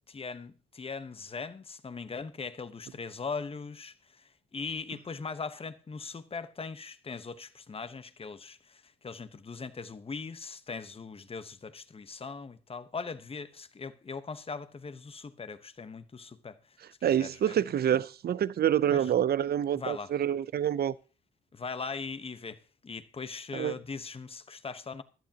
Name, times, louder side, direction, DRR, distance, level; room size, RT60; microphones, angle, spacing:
voice 1, 0.1-16.6 17.0-17.5 18.9-19.1 19.7-20.1 21.5-25.0, left 4 dB, 30° left, 1.2 m, -40 dB
voice 2, 17.0-20.9 23.5-23.8, right 10 dB, 50° right, 0.7 m, -27 dB
16.5 x 11.5 x 2.9 m
cardioid pair, 90°, 20 cm